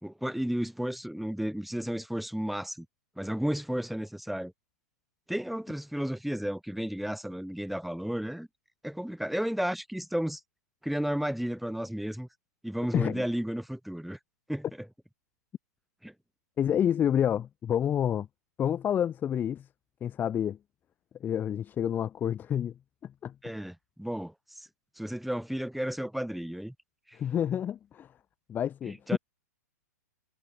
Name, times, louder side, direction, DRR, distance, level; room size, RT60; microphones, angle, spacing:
voice 1, 0.0-2.9 3.2-4.5 5.3-8.5 8.8-10.4 10.8-12.3 12.6-14.2 14.5-14.7 16.0-16.1 23.4-24.7 25.0-26.7 27.1-27.2 28.9-29.2, equal, ahead, 3.7 m, -33 dB
voice 2, 12.9-13.2 16.6-18.3 18.6-19.7 20.0-20.6 21.2-23.3 27.1-28.1 28.5-29.2, left 9 dB, 20° left, 0.8 m, -29 dB
hypercardioid pair, 120°, 9 cm